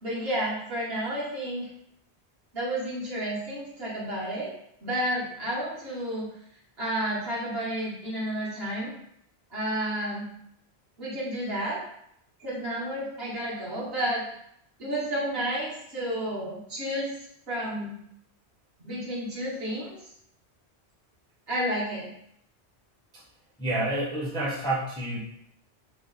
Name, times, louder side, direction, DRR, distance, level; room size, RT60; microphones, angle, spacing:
voice 1, 0.0-1.7 2.5-4.5 4.8-6.3 6.8-8.9 9.5-10.3 11.0-11.8 12.4-14.2 14.8-17.1 17.5-18.0 18.8-20.1 21.5-22.1, right 1 dB, 65° right, -7 dB, 1.3 m, -31 dB
voice 2, 23.6-25.2, right 1 dB, 5° left, -5 dB, 0.4 m, -29 dB
3.1 x 2.0 x 3.8 m, 0.74 s
omnidirectional pair, 1.1 m